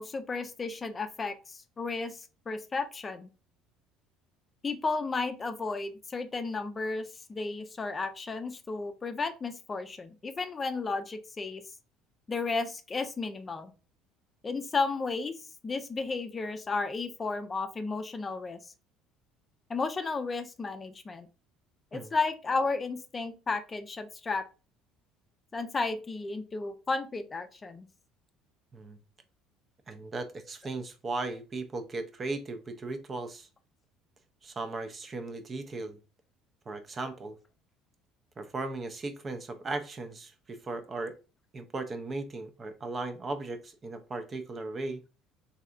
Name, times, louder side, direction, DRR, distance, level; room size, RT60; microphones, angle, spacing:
voice 1, 0.0-3.3 4.6-11.6 12.3-13.7 14.4-15.3 15.6-18.6 19.7-21.3 21.9-24.4 25.5-27.9, left 3 dB, 30° left, 8 dB, 0.5 m, -33 dB
voice 2, 29.9-33.5 34.4-36.0 36.7-37.4 38.4-41.2 41.5-45.0, right 3 dB, 35° right, 8 dB, 0.5 m, -37 dB
3.2 x 2.7 x 2.4 m, 0.33 s
supercardioid pair, 80°, 0 cm